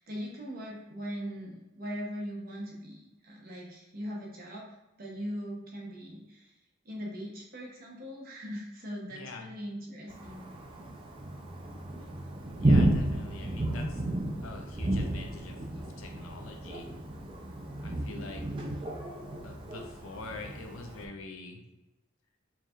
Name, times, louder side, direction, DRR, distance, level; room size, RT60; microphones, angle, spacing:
voice 1, 0.0-4.7 5.0-6.5 6.8-10.4, equal, 45° right, -2 dB, 0.9 m, -40 dB
voice 2, 9.1-9.5 12.6-14.0 14.4-16.9 17.8-18.4 19.4-21.6, left 3 dB, 85° left, 3 dB, 0.6 m, -45 dB
Thunder, 10.1-21.0, right 1 dB, 25° right, 0.4 m, -32 dB
4.5 x 2.8 x 2.4 m, 0.99 s
head